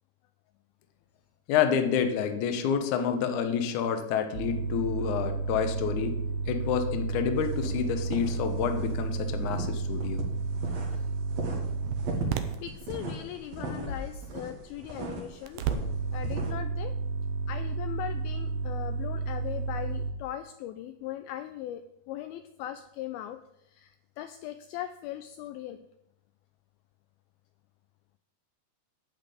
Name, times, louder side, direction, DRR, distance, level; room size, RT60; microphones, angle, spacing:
voice 1, 1.5-6.2 6.5-10.2, left 8 dB, 65° left, 7 dB, 2.1 m, -28 dB
sound 1, 4.3-12.6 15.5-20.1, right 5 dB, 75° right, 2.3 m, -32 dB
sound 2, 7.4-8.9 9.2-11.0 11.3-16.5, right 1 dB, 50° right, 2.4 m, -38 dB
voice 2, 12.6-15.6 16.1-17.0 17.5-23.4 23.7-25.8, left 12 dB, 80° left, 9 dB, 2.3 m, -39 dB
10.5 x 6.0 x 8.4 m, 0.81 s
omnidirectional pair, 4.7 m